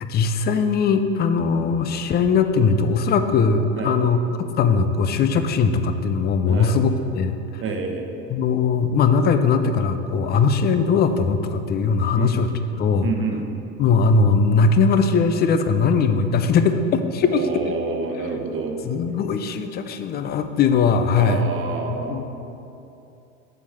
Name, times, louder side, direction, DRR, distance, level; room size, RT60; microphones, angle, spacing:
voice 1, 0.0-4.2 4.6-7.6 8.3-12.5 12.8-13.1 13.8-17.7 18.8-21.5 21.9-22.2, left 5 dB, 25° left, 9 dB, 0.5 m, -20 dB
voice 2, 7.6-8.0 10.3-10.4 12.2-12.3 13.0-13.4 17.3-18.8 21.2-22.2, right 4 dB, 30° right, 3 dB, 1.1 m, -28 dB
6.9 x 4.6 x 6.5 m, 2.8 s
hypercardioid pair, 85°, 40 cm